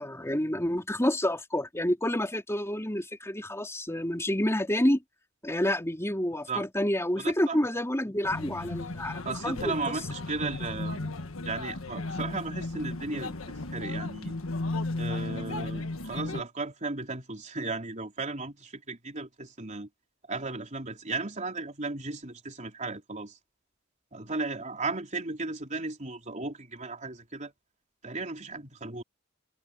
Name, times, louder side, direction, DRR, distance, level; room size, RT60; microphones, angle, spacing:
voice 1, 0.0-5.0 5.4-10.0, left 1 dB, 15° left, 3.9 m, -29 dB
voice 2, 7.2-7.6 9.2-11.1 11.4-13.3 13.7-14.4 15.0-19.9 20.3-23.4 24.1-27.5 28.0-29.0, right 3 dB, 35° right, 4.2 m, -35 dB
sound 1, 8.2-16.4, left 2 dB, 75° left, 1.6 m, -35 dB
head